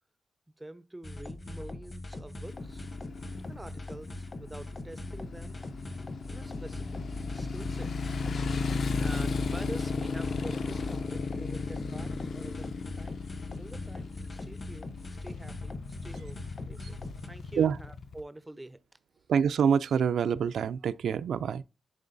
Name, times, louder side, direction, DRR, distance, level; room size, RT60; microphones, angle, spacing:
voice 1, 0.6-2.9 3.5-5.6 6.3-7.0 7.3-8.0 8.3-13.2 13.6-14.9 15.2-15.7 16.0-18.8, right 1 dB, 10° right, 0.4 m, -46 dB
sound 1, 1.0-17.3, left 2 dB, 30° left, 0.8 m, -42 dB
Motorcycle, 2.5-18.2, left 4 dB, 55° left, 0.5 m, -35 dB
sound 2, 6.4-17.6, left 4 dB, 85° left, 0.9 m, -54 dB
voice 2, 19.3-21.6, right 7 dB, 85° right, 0.3 m, -26 dB
10.5 x 3.8 x 2.6 m
wide cardioid pair, 155°, 0 cm